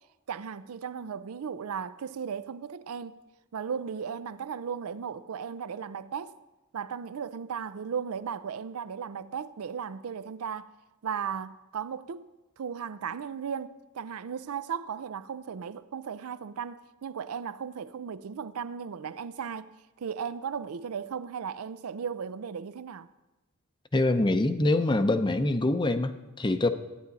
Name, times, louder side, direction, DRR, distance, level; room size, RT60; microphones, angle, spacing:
voice 1, 0.3-3.2 3.5-6.3 6.7-10.7 11.0-12.3 12.6-19.7 20.0-23.1, right 7 dB, 85° right, 0.5 m, -36 dB
voice 2, 23.9-26.7, left 2 dB, 20° left, 0.6 m, -25 dB
14.5 x 9.6 x 4.1 m
head